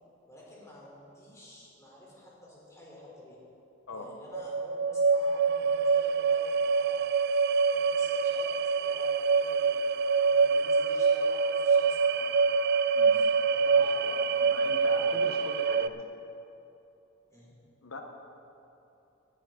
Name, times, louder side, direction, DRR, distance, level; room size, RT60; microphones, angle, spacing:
voice 1, 0.3-3.4 3.9-7.1 7.7-9.9 10.3-12.5 13.0-14.6 17.3-17.5, left 1 dB, 15° left, -5 dB, 3.4 m, -50 dB
sound 1, 4.3-15.9, right 5 dB, 55° right, 0.3 m, -25 dB
voice 2, 13.8-16.1 17.8-18.0, left 3 dB, 85° left, 3 dB, 0.9 m, -42 dB
18.0 x 11.5 x 3.8 m, 2.9 s
head